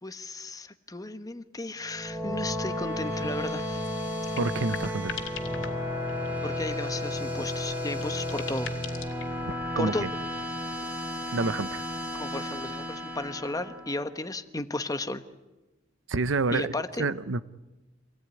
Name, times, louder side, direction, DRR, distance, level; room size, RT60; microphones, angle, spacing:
voice 1, 0.0-3.9 6.4-8.7 9.8-10.1 12.1-15.2 16.5-17.1, left 2 dB, 20° left, 10 dB, 1.1 m, -34 dB
sound 1, 1.8-14.2, left 1 dB, 10° right, 3.6 m, -33 dB
sound 2, 2.4-2.5 2.8-2.9 3.1-3.3 3.6-6.6 7.1-9.5, left 7 dB, 70° left, 2.5 m, -42 dB
voice 2, 4.4-5.1 9.7-10.1 11.3-11.8 16.1-16.7 17.0-17.4, right 3 dB, 70° right, 15 dB, 0.8 m, -28 dB
26.5 x 18.0 x 9.8 m, 1.1 s
head